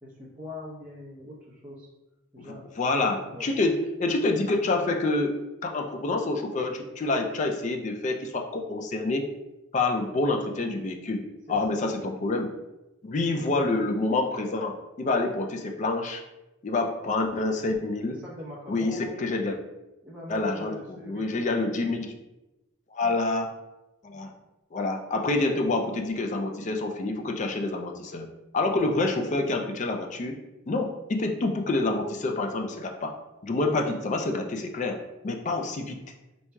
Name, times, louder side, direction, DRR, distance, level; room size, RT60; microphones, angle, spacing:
voice 1, 0.0-1.9 2.3-2.6 3.3-3.5 10.0-10.1 11.5-11.8 18.1-19.2 20.0-21.4 33.6-33.8 35.5-35.7, left 1 dB, 5° right, -8 dB, 0.8 m, -42 dB
voice 2, 2.4-9.2 9.7-11.2 11.5-12.5 13.0-16.2 16.6-18.2 18.7-19.6 20.3-20.7 21.1-22.1 22.9-23.5 24.0-24.3 24.7-28.3 28.5-30.4 30.7-33.1 33.4-35.9, left 2 dB, 35° left, 4 dB, 0.3 m, -27 dB
4.4 x 2.7 x 2.2 m, 1.0 s
head